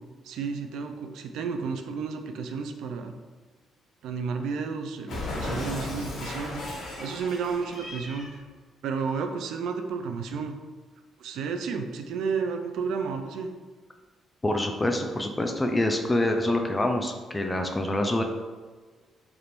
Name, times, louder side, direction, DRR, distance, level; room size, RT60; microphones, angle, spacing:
voice 1, 0.2-3.1 4.0-6.6 7.0-8.3 8.8-10.6 11.2-13.5, right 5 dB, 80° right, 5 dB, 0.4 m, -32 dB
Cat, 5.1-8.4, left 2 dB, 65° left, 1.2 m, -35 dB
voice 2, 14.4-18.2, left 1 dB, 15° left, 3 dB, 0.4 m, -26 dB
3.3 x 2.5 x 4.4 m, 1.4 s
cardioid pair, 90°, 0 cm